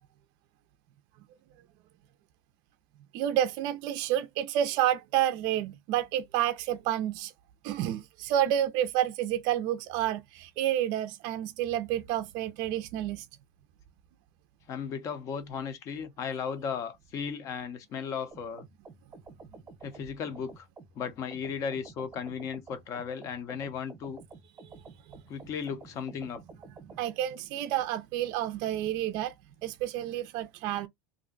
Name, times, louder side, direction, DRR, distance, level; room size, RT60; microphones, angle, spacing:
voice 1, 3.1-7.3 7.6-13.3 24.6-24.7 26.8-29.3 29.6-30.9, right 11 dB, 55° right, 0.4 m, -29 dB
voice 2, 14.7-18.6 19.8-20.7 20.9-24.2 25.3-26.4, left 6 dB, 40° left, 0.6 m, -36 dB
sound 1, 18.3-27.0, right 3 dB, 15° right, 0.8 m, -50 dB
2.5 x 2.1 x 3.7 m
supercardioid pair, 145°, 9 cm